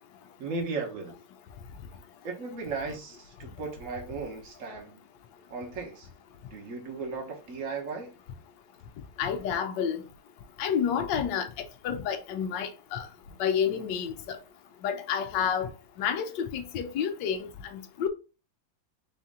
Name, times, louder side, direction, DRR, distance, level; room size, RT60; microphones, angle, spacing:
voice 1, 0.4-1.2 2.2-5.0 5.5-6.1 6.5-8.1, right 4 dB, 50° right, 1.4 m, -36 dB
voice 2, 9.2-10.0 10.6-13.1 13.4-14.4 14.8-15.7 16.0-18.1, left 8 dB, 75° left, 1.3 m, -30 dB
4.1 x 2.8 x 3.6 m
omnidirectional pair, 2.0 m